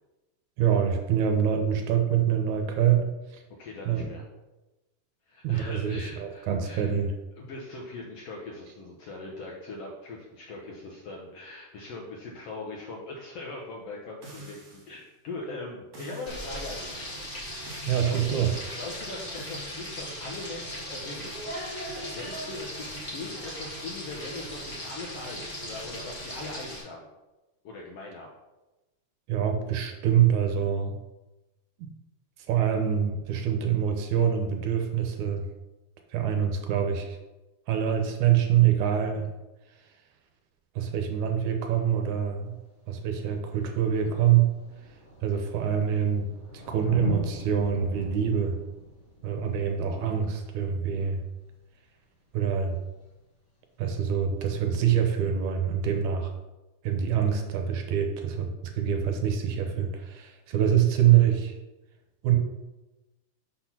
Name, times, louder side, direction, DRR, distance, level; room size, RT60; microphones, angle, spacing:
voice 1, 0.6-3.4 3.9-4.1 5.4-7.1 17.9-18.5 29.3-31.0 31.8-31.9 32.5-35.5 36.1-37.2 37.7-39.3 40.8-42.6 42.9-44.5 45.2-46.3 46.5-48.6 49.2-51.2 52.3-52.8 53.8-56.3 56.8-58.5 58.8-61.5 62.2-62.4, right 9 dB, 75° right, 4 dB, 2.0 m, -25 dB
voice 2, 3.6-4.2 5.3-6.9 7.4-17.0 18.0-18.3 18.7-22.9 23.1-27.1 27.6-28.3, left 3 dB, 70° left, -2 dB, 1.5 m, -41 dB
sound 1, 14.2-15.0 15.9-16.6 17.7-18.2 19.4-19.7, right 1 dB, 55° right, 2.5 m, -46 dB
Frying (food), 16.3-26.8, equal, 30° left, 1.4 m, -38 dB
Thunder, 42.5-42.6 43.6-43.7 43.9-51.2 52.9-53.0, left 1 dB, 50° left, 3.1 m, -39 dB
5.9 x 4.2 x 5.9 m, 1.1 s
omnidirectional pair, 3.7 m